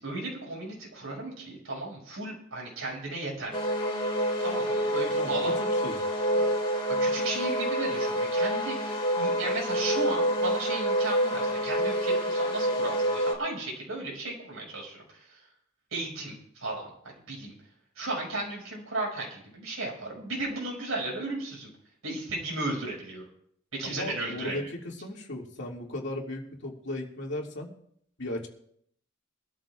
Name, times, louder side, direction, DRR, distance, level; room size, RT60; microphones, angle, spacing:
voice 1, 0.0-3.5 4.4-5.5 6.4-6.5 7.0-15.3 15.9-16.9 17.3-17.5 18.0-21.7 22.0-23.2 23.7-24.6, right 2 dB, 85° right, -2 dB, 5.9 m, -35 dB
sound 1, 3.5-13.3, equal, 25° left, 4.3 m, -27 dB
voice 2, 5.2-6.1 23.8-27.7 28.2-28.5, left 1 dB, 60° left, 0 dB, 2.4 m, -36 dB
23.0 x 13.0 x 2.5 m, 0.68 s
head